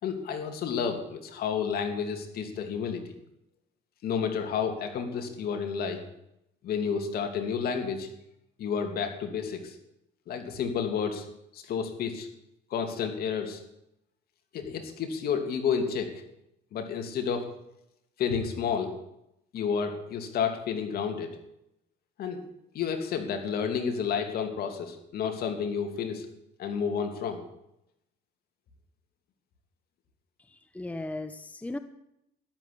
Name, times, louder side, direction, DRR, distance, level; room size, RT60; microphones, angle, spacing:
voice 1, 0.0-3.1 4.0-6.0 6.6-8.1 8.6-9.8 10.3-11.3 11.5-12.3 12.7-13.6 14.5-16.2 16.7-17.5 18.2-18.9 19.5-21.4 22.2-22.4 22.7-26.3 26.6-27.4, left 6 dB, 65° left, 5 dB, 2.9 m, -30 dB
voice 2, 30.5-31.8, left 2 dB, 10° left, 10 dB, 1.0 m, -37 dB
13.5 x 11.5 x 8.6 m, 0.81 s
cardioid pair, 110°, 17 cm